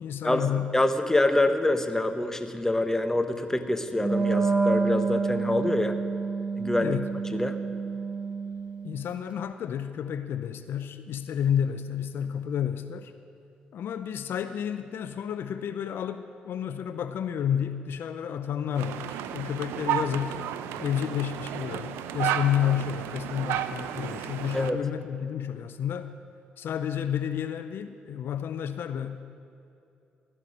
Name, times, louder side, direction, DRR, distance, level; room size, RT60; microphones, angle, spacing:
voice 1, 0.0-0.7 6.8-7.1 8.8-13.1 13.7-20.4 20.8-26.1 26.6-29.2, left 9 dB, 65° left, 10 dB, 0.6 m, -30 dB
voice 2, 0.7-5.9 6.6-7.0 7.3-7.6 24.5-24.8, left 1 dB, 10° left, 8 dB, 1.1 m, -25 dB
Wind instrument woodwind instrument, 3.9-9.0, right 4 dB, 35° right, 2.4 m, -28 dB
sound 1, 18.8-24.7, right 10 dB, 85° right, 0.5 m, -32 dB
16.5 x 5.9 x 9.7 m, 2.7 s
supercardioid pair, 55°, 4 cm